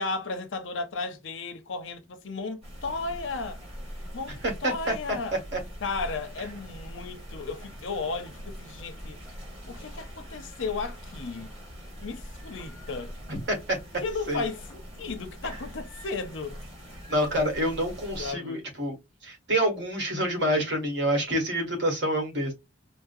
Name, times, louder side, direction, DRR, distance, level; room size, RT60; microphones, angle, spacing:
voice 1, 0.0-3.6 4.1-5.4 5.8-9.2 9.7-11.5 12.0-13.1 14.0-16.6 18.2-18.6, left 3 dB, 70° left, 0.6 m, -34 dB
sound 1, 2.6-18.3, equal, 30° right, 1.9 m, -43 dB
voice 2, 4.4-4.9 5.5-5.6 13.3-13.8 14.3-14.4 17.1-19.0 19.2-22.5, equal, 60° right, 1.5 m, -27 dB
4.8 x 2.1 x 2.5 m
head